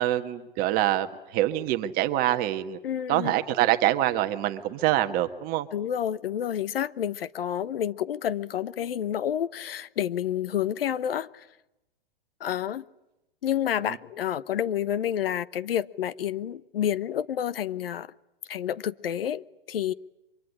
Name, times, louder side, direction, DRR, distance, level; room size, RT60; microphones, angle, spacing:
voice 1, 0.0-2.8 3.1-5.7 13.9-14.0, right 14 dB, 30° right, 1.4 m, -25 dB
voice 2, 2.8-3.3 5.7-11.5 12.4-12.8 13.4-18.1 18.5-19.9, left 10 dB, 75° left, 1.0 m, -29 dB
24.5 x 23.5 x 9.9 m
hypercardioid pair, 135°, 29 cm